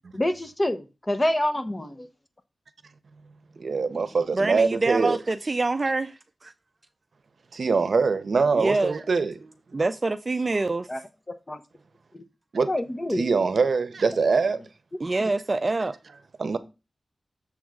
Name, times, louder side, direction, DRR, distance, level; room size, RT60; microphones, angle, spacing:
voice 1, 0.1-2.1 10.9-11.0 11.5-11.6 12.1-12.2 12.7-13.2, left 1 dB, 25° left, 0.8 m, -27 dB
voice 2, 3.6-5.2 7.5-9.5 12.5-12.7 13.2-14.6 16.4-16.6, right 4 dB, 70° right, 0.7 m, -23 dB
voice 3, 4.3-6.5 8.5-9.0 9.7-10.9 15.0-15.9, right 3 dB, 35° right, 0.4 m, -26 dB
7.1 x 3.5 x 6.2 m
wide cardioid pair, 110°, 0 cm